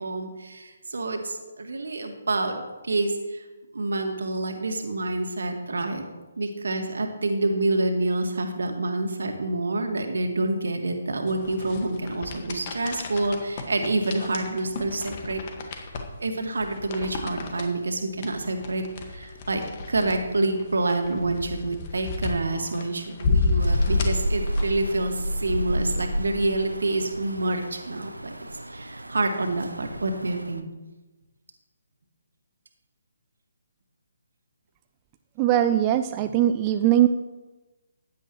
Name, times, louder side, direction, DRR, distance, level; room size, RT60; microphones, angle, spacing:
voice 1, 0.0-3.4 3.7-6.0 6.4-15.4 16.2-19.6 19.9-28.3 28.7-30.6, right 2 dB, 65° right, 5 dB, 1.8 m, -27 dB
sound 1, 11.3-24.9, left 4 dB, 35° left, 1.7 m, -32 dB
Rain, 23.6-30.6, equal, 85° right, 0.8 m, -30 dB
voice 2, 35.4-37.1, right 12 dB, 25° right, 9 dB, 0.4 m, -20 dB
15.5 x 10.5 x 3.1 m, 1.2 s
figure-of-eight pair, 140°, 0 cm